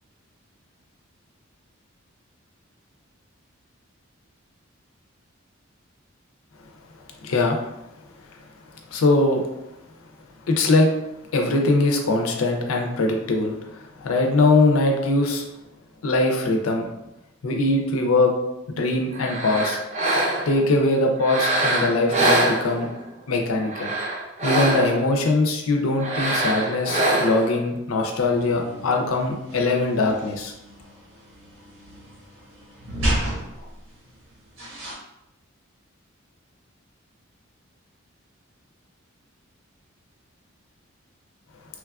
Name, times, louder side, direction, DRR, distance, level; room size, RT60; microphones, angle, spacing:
voice 1, 7.2-7.7 8.9-9.4 10.5-10.9 11.3-15.4 16.0-16.9 17.4-18.3 18.7-19.8 20.5-22.9 23.3-23.9 24.4-30.5, left 2 dB, 90° left, 2 dB, 0.5 m, -21 dB
sound 1, 19.1-20.6 21.2-23.1 23.6-25.1 26.0-27.5, right 1 dB, 35° right, 0.5 m, -24 dB
sound 2, 28.2-34.9, right 1 dB, 85° right, 1.1 m, -33 dB
3.1 x 2.3 x 2.3 m, 0.92 s
head